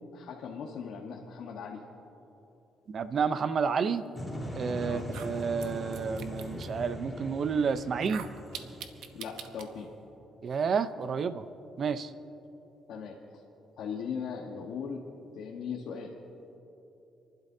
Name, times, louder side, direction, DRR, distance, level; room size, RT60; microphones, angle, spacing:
voice 1, 0.1-1.8 4.8-5.1 9.1-9.9 12.9-13.2 13.8-15.0 15.3-16.1, left 6 dB, 80° left, -2 dB, 1.3 m, -38 dB
voice 2, 2.9-4.0 4.6-8.2 10.4-11.5 11.8-12.1, right 6 dB, 50° right, 12 dB, 0.7 m, -30 dB
sound 1, 4.2-10.0, left 1 dB, 5° left, 4.0 m, -40 dB
sound 2, 4.4-4.5 5.0-6.7 7.9-9.7, right 8 dB, 85° right, 0.9 m, -44 dB
29.5 x 11.5 x 2.8 m, 3.0 s
cardioid pair, 90°, 0 cm